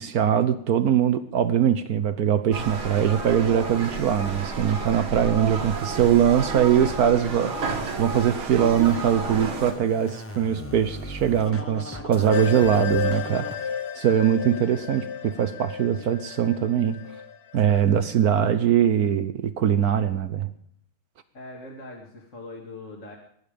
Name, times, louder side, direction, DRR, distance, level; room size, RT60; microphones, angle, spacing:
voice 1, 0.0-17.0 17.5-20.5, right 9 dB, 60° right, 12 dB, 1.0 m, -22 dB
sound 1, 2.5-9.7, right 4 dB, 80° right, 2.8 m, -31 dB
Scratching (performance technique), 8.7-13.6, left 1 dB, 15° left, 0.5 m, -38 dB
sound 2, 12.3-18.0, left 8 dB, 70° left, 0.5 m, -32 dB
voice 2, 21.3-23.2, left 2 dB, 40° left, 0 dB, 2.2 m, -41 dB
22.5 x 10.5 x 5.2 m, 0.65 s
omnidirectional pair, 2.3 m